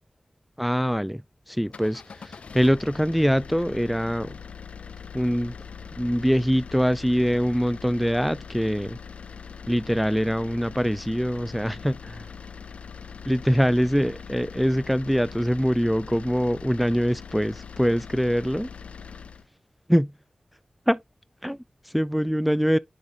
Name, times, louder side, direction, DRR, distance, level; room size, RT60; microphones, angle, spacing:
voice 1, 0.6-4.4 5.1-5.6 6.0-9.0 9.7-12.3 13.3-18.7 19.9-20.1 20.9-21.0 21.4-22.8, equal, ahead, 0.3 m, -24 dB
sound 1, 1.6-19.5, left 6 dB, 80° left, 0.3 m, -42 dB
10.5 x 3.6 x 2.9 m
cardioid pair, 50°, 2 cm